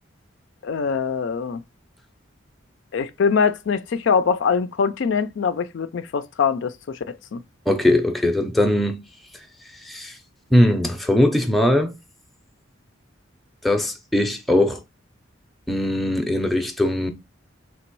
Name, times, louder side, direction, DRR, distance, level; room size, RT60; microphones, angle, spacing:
voice 1, 0.6-1.6 2.9-7.4, left 6 dB, 60° left, 0.4 m, -23 dB
voice 2, 7.7-9.0 9.9-10.1 10.5-11.9 13.6-14.8 15.7-17.1, left 1 dB, ahead, 0.6 m, -20 dB
3.3 x 3.0 x 4.5 m
head